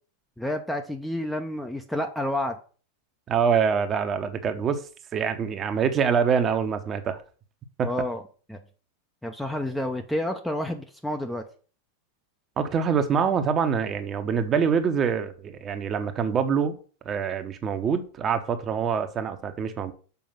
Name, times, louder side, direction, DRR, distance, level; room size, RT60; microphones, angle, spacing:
voice 1, 0.4-2.6 7.8-8.2 8.5-8.6 9.2-11.5, left 1 dB, 5° left, 0.8 m, -29 dB
voice 2, 3.3-4.8 5.1-7.2 7.8-7.9 12.6-16.8 17.0-19.9, right 6 dB, 25° right, 1.0 m, -25 dB
7.0 x 5.1 x 5.7 m
figure-of-eight pair, 90°, 0 cm